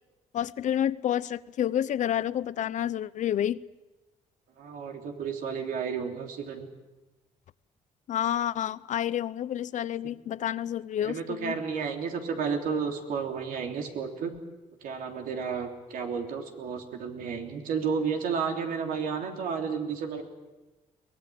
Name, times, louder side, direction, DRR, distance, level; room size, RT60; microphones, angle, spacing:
voice 1, 0.3-3.6 8.1-11.6, left 10 dB, 60° left, 17 dB, 0.7 m, -29 dB
voice 2, 4.6-6.7 11.0-14.3 14.8-20.2, right 6 dB, 80° right, 3 dB, 3.3 m, -32 dB
23.5 x 19.0 x 8.6 m, 1.1 s
cardioid pair, 120°, 14 cm